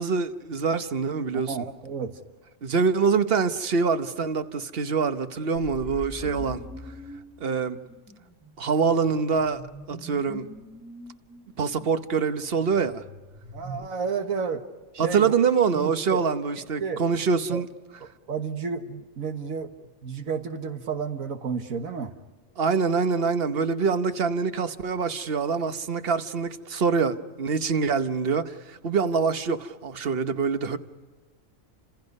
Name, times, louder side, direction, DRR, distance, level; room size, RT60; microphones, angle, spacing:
voice 1, 0.0-1.7 2.6-6.6 7.4-7.8 8.6-10.5 11.6-13.0 15.0-17.7 22.6-30.8, right 5 dB, 50° right, 1.2 m, -25 dB
voice 2, 1.5-2.1 13.5-14.6 14.9-15.3 15.7-16.2 16.8-17.0 17.5-17.6 18.3-19.7 20.0-22.1, right 5 dB, 90° right, 1.7 m, -31 dB
sound 1, 5.6-13.9, equal, 5° right, 1.4 m, -43 dB
30.0 x 27.0 x 5.4 m
omnidirectional pair, 1.4 m